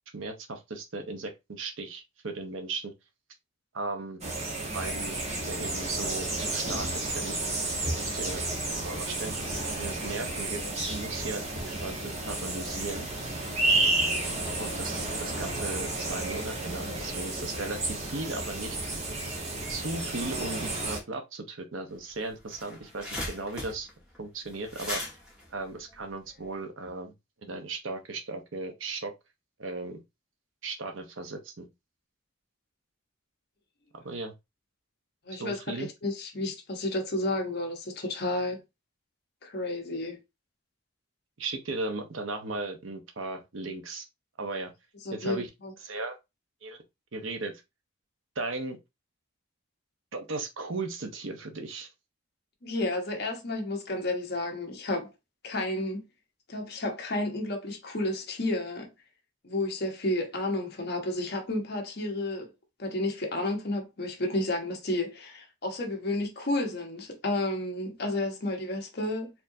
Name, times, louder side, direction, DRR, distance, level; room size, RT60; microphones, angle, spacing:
voice 1, 0.1-2.9 3.7-4.2 4.7-5.2 5.5-7.4 7.9-8.4 8.8-9.4 9.8-11.5 11.7-13.1 14.6-18.8 19.7-23.9 24.2-25.0 25.5-27.1 27.4-29.1 29.6-30.0 30.6-31.7 33.9-34.3 35.3-35.9 41.4-44.1 44.4-44.7 45.1-45.5 45.8-46.2 46.6-46.8 47.1-47.5 48.4-48.8 50.1-51.9, right 3 dB, 70° right, 0.8 m, -36 dB
sound 1, 4.2-21.0, right 2 dB, 30° right, 1.0 m, -31 dB
sound 2, 22.0-22.1 22.3-26.6, left 1 dB, 5° right, 1.3 m, -38 dB
voice 2, 35.3-38.6 39.4-40.2 45.0-45.7 52.6-55.1 55.4-56.0 56.5-58.9 59.4-62.5 62.8-69.3, left 2 dB, 50° left, 1.0 m, -31 dB
4.3 x 2.8 x 2.6 m
head